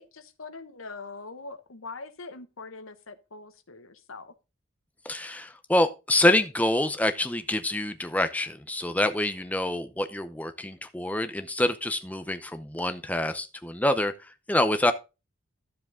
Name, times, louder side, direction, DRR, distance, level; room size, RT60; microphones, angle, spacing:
voice 1, 0.0-4.3, left 3 dB, 70° left, 1.1 m, -43 dB
voice 2, 5.0-14.9, left 1 dB, 5° left, 0.7 m, -26 dB
12.0 x 7.6 x 3.7 m
head